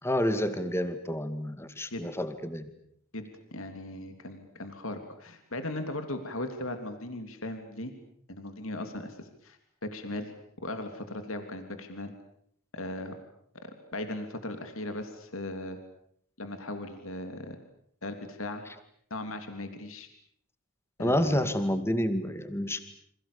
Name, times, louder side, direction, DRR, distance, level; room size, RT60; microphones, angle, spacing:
voice 1, 0.0-2.7 21.0-22.8, equal, 10° left, 10 dB, 2.3 m, -29 dB
voice 2, 3.5-7.9 8.3-10.3 10.6-12.1 12.7-13.2 13.5-15.8 16.4-17.6 18.0-18.7 19.1-20.1 21.0-21.4, left 1 dB, 65° left, 7 dB, 3.3 m, -38 dB
30.0 x 27.0 x 7.1 m, 0.68 s
head